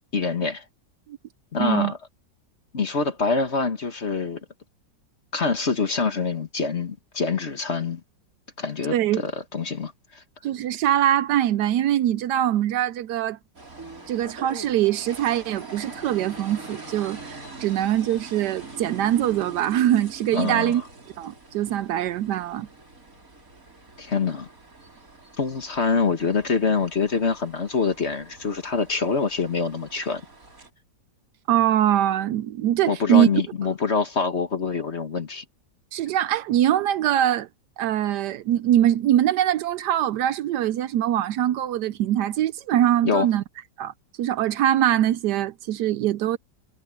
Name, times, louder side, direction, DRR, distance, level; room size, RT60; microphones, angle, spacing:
voice 1, 0.1-0.6 1.5-2.0 2.7-4.4 5.3-8.0 8.6-10.2 20.3-20.8 24.0-24.5 25.4-30.2 32.9-35.4 43.0-43.3, left 4 dB, 40° left, 1.7 m, -25 dB
voice 2, 1.6-1.9 8.9-9.2 10.4-13.4 14.1-20.8 21.2-22.7 31.5-33.3 35.9-37.5 37.8-43.4 43.8-43.9 44.2-46.4, right 11 dB, 75° right, 1.1 m, -22 dB
sound 1, 13.5-30.7, right 3 dB, 50° right, 5.0 m, -44 dB
omnidirectional pair, 1.9 m